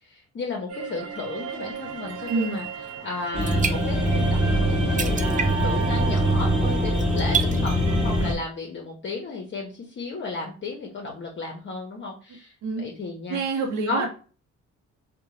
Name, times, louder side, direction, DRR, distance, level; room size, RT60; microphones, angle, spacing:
voice 1, 0.0-2.7 3.0-13.4 13.9-14.1, left 3 dB, 40° left, -1 dB, 0.7 m, -34 dB
sound 1, 0.7-8.4, right 6 dB, 50° right, 0.9 m, -35 dB
voice 2, 2.3-2.6 12.6-12.9 13.3-14.1, right 4 dB, 85° right, 1 dB, 0.6 m, -27 dB
sound 2, 2.9-3.0 3.2-4.3 4.6-4.7 5.0-5.8 6.2-6.4 6.9-7.7 8.3-8.4, right 6 dB, 25° right, 0.4 m, -29 dB
sound 3, 3.3-8.3, equal, 5° right, 0.9 m, -23 dB
2.5 x 2.1 x 3.0 m, 0.37 s
cardioid pair, 90°, 30 cm